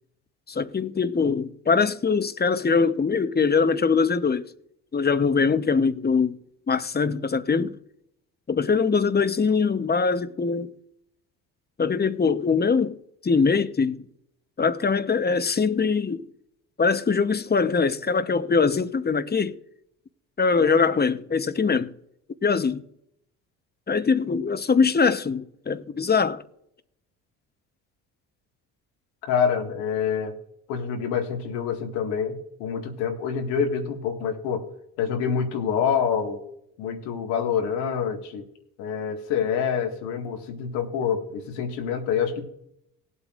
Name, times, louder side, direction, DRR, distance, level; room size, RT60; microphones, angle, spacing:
voice 1, 0.5-4.5 4.9-6.4 6.7-7.8 8.5-10.7 11.8-13.0 13.2-14.0 14.6-16.3 16.8-19.6 20.4-21.9 22.4-22.8 23.9-26.4, left 5 dB, 25° left, 1.0 m, -22 dB
voice 2, 29.3-30.3 30.7-34.7 35.0-36.4 36.8-38.4 38.8-42.4, left 7 dB, 85° left, 2.0 m, -26 dB
19.5 x 8.2 x 2.5 m
hypercardioid pair, 60°, 41 cm